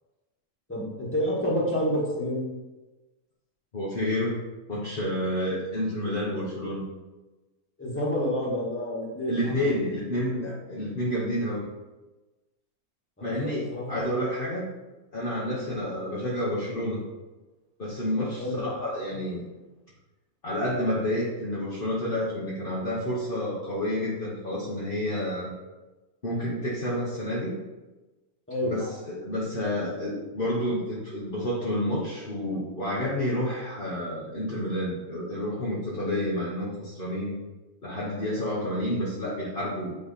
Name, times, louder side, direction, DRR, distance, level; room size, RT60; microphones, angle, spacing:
voice 1, 0.7-2.4 7.8-9.4 13.2-14.0 15.5-15.7 18.4-18.6 28.5-28.7, equal, 10° left, -5 dB, 1.6 m, -29 dB
voice 2, 3.7-4.4 4.7-6.8 9.3-11.7 13.2-14.7 15.1-17.0 17.8-19.5 20.4-25.5 26.2-27.6 28.6-37.4 37.8-40.0, left 1 dB, 40° left, -7 dB, 1.3 m, -29 dB
8.7 x 3.4 x 4.2 m, 1.1 s
omnidirectional pair, 1.6 m